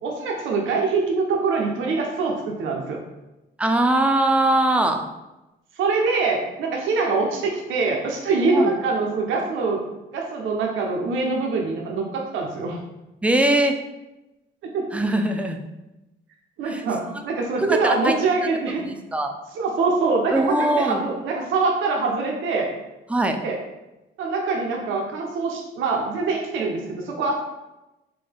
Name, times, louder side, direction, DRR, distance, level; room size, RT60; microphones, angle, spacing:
voice 1, 0.0-3.0 5.8-9.8 10.1-12.8 14.6-15.0 16.6-18.8 19.5-22.7 23.4-23.6 24.2-27.4, right 4 dB, 80° right, 0 dB, 0.6 m, -24 dB
voice 2, 3.6-5.0 8.5-8.7 13.2-13.8 14.9-15.6 16.7-16.8 17.6-18.1 18.8-19.3 20.3-21.0 23.1-23.4, right 1 dB, 5° right, 4 dB, 0.3 m, -21 dB
3.8 x 2.2 x 3.3 m, 1.0 s
cardioid pair, 90°, 20 cm